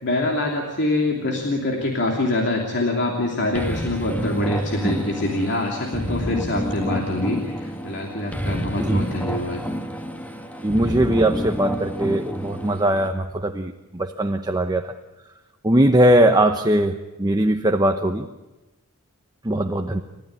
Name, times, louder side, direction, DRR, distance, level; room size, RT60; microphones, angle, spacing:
voice 1, 0.0-9.6, left 2 dB, 55° left, 2 dB, 2.9 m, -24 dB
sound 1, 3.5-13.1, equal, 5° left, 1.6 m, -29 dB
voice 2, 10.6-15.0 15.6-18.3 19.4-20.0, right 1 dB, 20° right, 5 dB, 0.9 m, -20 dB
29.5 x 14.0 x 9.7 m, 1.1 s
head